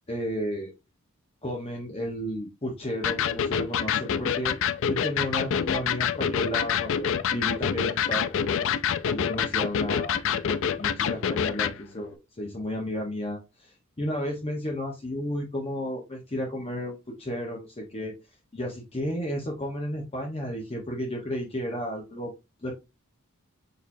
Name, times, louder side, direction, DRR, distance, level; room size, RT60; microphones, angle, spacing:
voice 1, 0.1-0.7 1.4-4.5 4.9-8.7 9.0-10.2 10.4-13.7 14.0-18.1 18.5-22.3 22.6-22.7, equal, 25° left, -1 dB, 1.0 m, -33 dB
Electric guitar, 3.0-11.8, left 8 dB, 65° left, 0.4 m, -27 dB
6.5 x 2.9 x 2.6 m, 0.25 s
head